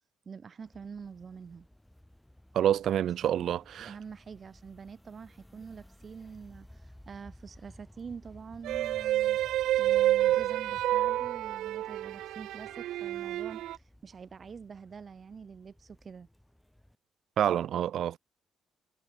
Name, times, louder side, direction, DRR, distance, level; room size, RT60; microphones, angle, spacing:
voice 1, 0.3-1.7 3.2-9.4 9.8-16.3, right 6 dB, 40° right, 5.9 m, -46 dB
sound 1, 0.6-17.0, left 1 dB, 5° left, 8.0 m, -56 dB
voice 2, 2.5-3.9 17.4-18.2, right 10 dB, 70° right, 2.1 m, -27 dB
sound 2, 8.6-13.8, right 14 dB, 85° right, 1.4 m, -29 dB
cardioid pair, 90°, 0 cm